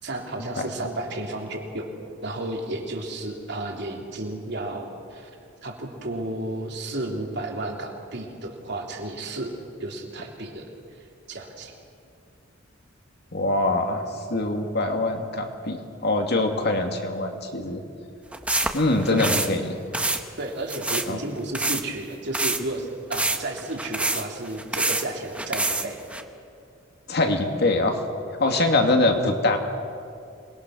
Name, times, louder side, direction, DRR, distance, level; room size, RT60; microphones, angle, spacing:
voice 1, 0.0-1.9 2.2-5.3 5.6-9.5 9.8-10.7 10.9-11.7 19.1-19.3 20.4-26.0 28.4-28.7, right 2 dB, 60° right, 1 dB, 3.3 m, -32 dB
voice 2, 13.3-17.8 18.7-19.7 21.1-21.2 27.1-28.0 28.4-29.6, left 2 dB, 55° left, 4 dB, 2.4 m, -23 dB
sound 1, 18.3-19.5 19.9-20.2 20.7-21.1 21.5-21.8 22.3-22.6 23.1-25.1 25.3-26.2, right 2 dB, 5° right, 1.1 m, -26 dB
27.0 x 21.0 x 6.4 m, 2.4 s
head